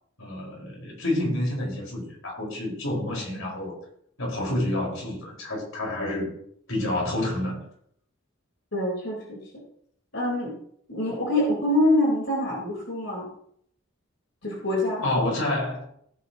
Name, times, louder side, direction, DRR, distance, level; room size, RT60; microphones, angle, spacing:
voice 1, 0.2-3.8 4.2-6.4 6.7-7.6 15.0-15.9, left 1 dB, 80° left, -2 dB, 5.3 m, -28 dB
voice 2, 8.7-9.4 10.1-10.5 10.9-13.3 14.4-15.0, left 1 dB, 60° left, -4 dB, 4.5 m, -25 dB
17.5 x 9.9 x 3.1 m, 0.66 s
head